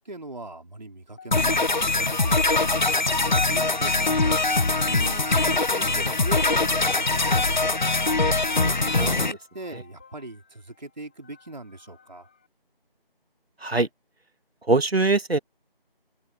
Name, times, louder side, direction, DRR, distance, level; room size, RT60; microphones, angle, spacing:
voice 1, 0.0-2.5 2.8-7.8 8.5-12.3, right 2 dB, 45° right, 4.0 m, -41 dB
sound 1, 1.3-9.3, left 3 dB, 50° left, 0.4 m, -22 dB
sound 2, 8.2-12.5, left 6 dB, 10° left, 3.2 m, -54 dB
voice 2, 14.7-15.4, right 3 dB, 80° right, 1.8 m, -22 dB
open air
figure-of-eight pair, 175°, 30 cm